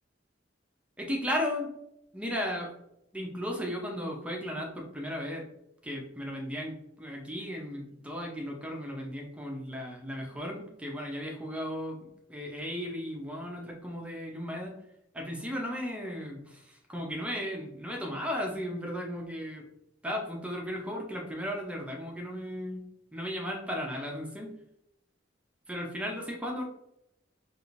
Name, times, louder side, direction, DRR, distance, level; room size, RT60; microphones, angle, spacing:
voice 1, 1.0-1.7 2.1-2.7 3.1-5.5 5.8-12.0 12.3-14.8 15.1-19.6 20.0-22.9 23.1-24.5 25.7-26.6, equal, 5° right, 0 dB, 0.6 m, -35 dB
4.7 x 2.6 x 2.5 m, 0.79 s
head